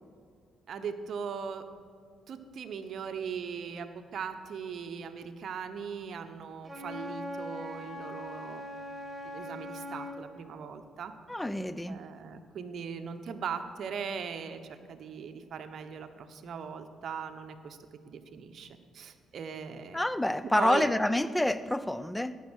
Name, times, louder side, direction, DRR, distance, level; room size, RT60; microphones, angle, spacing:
voice 1, 0.7-1.6 2.3-8.6 9.3-11.1 11.9-17.8 18.1-20.0 20.6-20.9, right 6 dB, 60° right, 8 dB, 1.1 m, -39 dB
Wind instrument woodwind instrument, 6.6-10.2, left 1 dB, 20° right, 1.9 m, -40 dB
voice 2, 11.3-12.0 19.9-22.3, left 1 dB, 10° left, 15 dB, 0.6 m, -28 dB
14.5 x 10.5 x 6.4 m, 2.2 s
cardioid pair, 90°, 0 cm